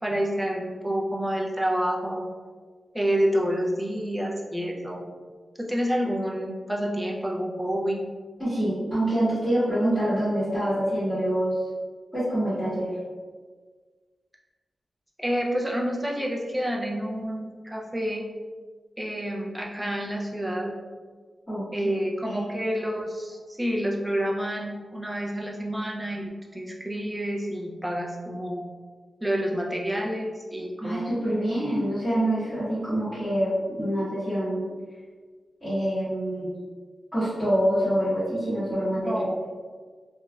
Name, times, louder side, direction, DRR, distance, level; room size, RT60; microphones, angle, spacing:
voice 1, 0.0-2.3 2.9-5.0 5.6-8.0 15.2-18.2 19.0-20.7 21.7-28.7 29.2-31.1 39.0-39.4, equal, 10° right, -2 dB, 0.4 m, -28 dB
voice 2, 8.4-11.6 12.1-13.0 21.5-21.6 22.2-22.4 30.8-34.7 35.6-36.5 37.1-39.2, right 1 dB, 15° left, -16 dB, 1.2 m, -26 dB
3.0 x 2.3 x 2.2 m, 1.5 s
wide cardioid pair, 130°, 0 cm